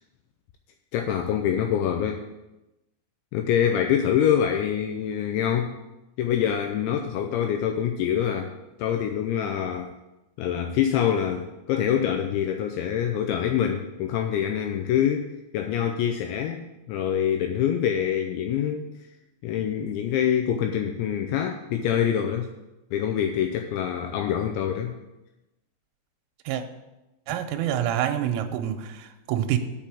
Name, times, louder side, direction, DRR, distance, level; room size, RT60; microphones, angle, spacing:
voice 1, 0.9-2.2 3.3-5.7 6.2-8.5 8.8-9.9 10.4-15.3 15.5-16.6 16.9-18.9 19.4-22.5 22.9-25.0, left 9 dB, 85° left, 2.6 m, -25 dB
voice 2, 27.3-29.6, right 11 dB, 85° right, 3.1 m, -27 dB
7.1 x 5.5 x 7.3 m
omnidirectional pair, 5.7 m